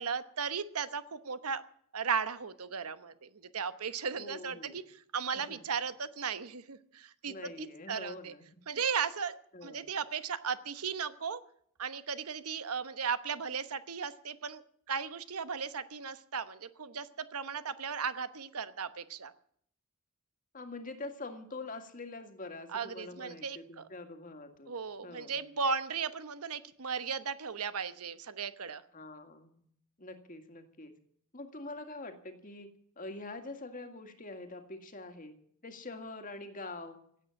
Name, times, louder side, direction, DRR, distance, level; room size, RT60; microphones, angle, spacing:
voice 1, 0.0-1.6 1.9-8.3 8.7-9.4 9.6-11.4 11.8-14.6 14.9-19.3 22.7-23.9 24.7-28.8, right 6 dB, 85° right, 12 dB, 1.0 m, -36 dB
voice 2, 4.1-4.8 5.3-5.6 7.3-8.6 9.5-9.9 20.5-24.8 25.0-25.4 28.9-29.6 30.0-30.9 31.3-32.7 33.0-35.3 35.6-37.0, left 2 dB, 35° left, 7 dB, 2.0 m, -45 dB
16.5 x 8.7 x 10.0 m, 0.64 s
head